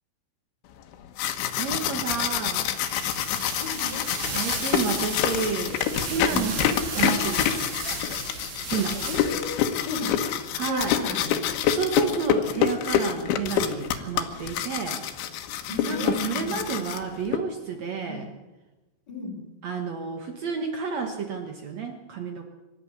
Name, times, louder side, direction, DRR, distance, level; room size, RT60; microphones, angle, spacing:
sound 1, 0.9-17.4, left 9 dB, 75° left, 3.7 m, -27 dB
voice 1, 1.6-2.7 4.3-5.8 6.0-7.8 8.6-9.0 10.5-11.0 11.7-15.0 15.9-18.3 19.6-22.4, right 6 dB, 85° right, 5 dB, 1.5 m, -30 dB
sound 2, 2.7-9.6, right 4 dB, 60° right, 6.4 m, -35 dB
voice 2, 3.5-4.1 6.3-6.6 9.1-10.2 10.7-11.3 15.7-16.6 18.1-18.3 19.1-19.4, left 2 dB, 20° left, 0 dB, 4.8 m, -34 dB
24.5 x 13.0 x 9.9 m, 1.1 s
omnidirectional pair, 5.6 m